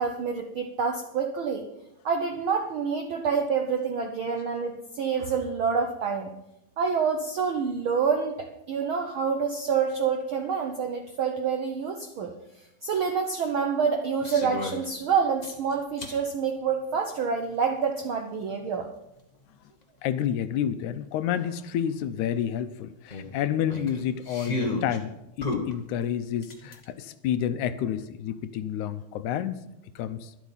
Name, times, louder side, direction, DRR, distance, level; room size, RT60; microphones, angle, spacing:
voice 1, 0.0-1.7 2.0-6.3 6.8-12.3 12.8-18.9, right 6 dB, 75° right, 4 dB, 1.2 m, -27 dB
sound 1, 14.2-14.9 15.4-16.2 17.6-17.7 20.4-20.5 20.8-20.9 21.3-21.5 23.1-25.0 25.4-26.8, left 2 dB, 50° left, 0.4 m, -33 dB
voice 2, 20.0-25.1 25.4-29.6 30.0-30.3, left 9 dB, 80° left, 12 dB, 2.0 m, -29 dB
12.0 x 11.5 x 5.6 m, 0.88 s
omnidirectional pair, 3.6 m